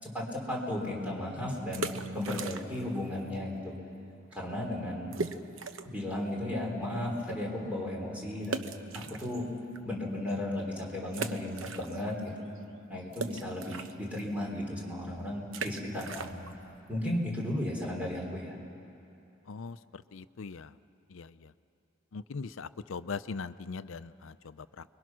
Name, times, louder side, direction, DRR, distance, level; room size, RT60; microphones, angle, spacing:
voice 1, 0.0-3.7 4.3-5.1 5.8-9.5 9.8-12.3 12.9-16.5 16.9-18.6, left 1 dB, 5° right, -2 dB, 3.9 m, -35 dB
sound 1, 1.7-3.0 3.2-3.3 3.9-4.0 4.3-4.4 5.1-6.0 6.5-6.6 8.4-9.8 10.3-10.4 11.1-12.3 12.6-18.1, right 4 dB, 80° right, 0.9 m, -40 dB
voice 2, 19.5-20.7 21.1-21.3 22.1-24.8, left 4 dB, 80° left, 13 dB, 0.6 m, -40 dB
29.5 x 22.0 x 6.2 m, 2.7 s
head